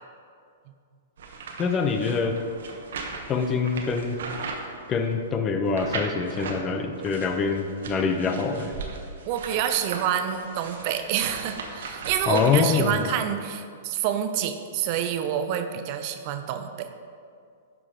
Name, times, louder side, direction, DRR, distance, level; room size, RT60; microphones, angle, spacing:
sound 1, 1.2-5.2 5.7-6.6 7.0-13.0, right 4 dB, 65° right, 1.1 m, -38 dB
voice 1, 1.6-2.4 3.3-4.2 4.9-8.7 12.3-13.1, left 5 dB, 25° left, 6 dB, 0.7 m, -25 dB
voice 2, 9.3-16.9, right 9 dB, 45° right, 7 dB, 0.6 m, -28 dB
12.0 x 4.7 x 3.8 m, 2.3 s
hypercardioid pair, 110°, 0 cm